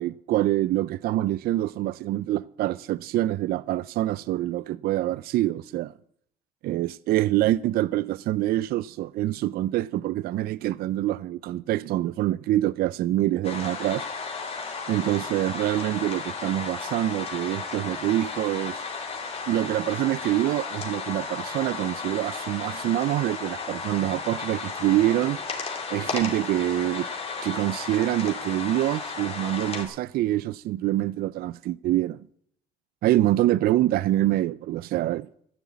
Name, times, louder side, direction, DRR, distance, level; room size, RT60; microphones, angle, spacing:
voice 1, 0.0-5.9 6.6-14.1 14.9-18.8 19.5-25.4 25.9-27.1 27.4-32.2 33.0-35.3, right 14 dB, 65° right, 0.4 m, -25 dB
sound 1, 13.4-29.9, left 4 dB, 35° left, 2.9 m, -34 dB
13.0 x 7.0 x 8.6 m
cardioid pair, 110°, 17 cm